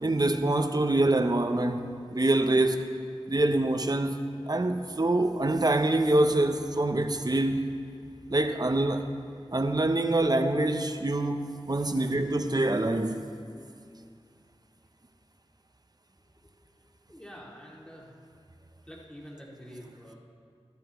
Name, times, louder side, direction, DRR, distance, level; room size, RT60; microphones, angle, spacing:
voice 1, 0.0-2.9 3.3-4.2 4.5-7.7 8.3-9.1 9.5-13.2, right 2 dB, 40° right, 0.7 m, -25 dB
voice 2, 11.9-12.2 16.4-16.7 17.1-18.1 18.9-20.1, equal, 10° left, 2.3 m, -47 dB
12.5 x 12.5 x 3.1 m
wide cardioid pair, 45°, 10 cm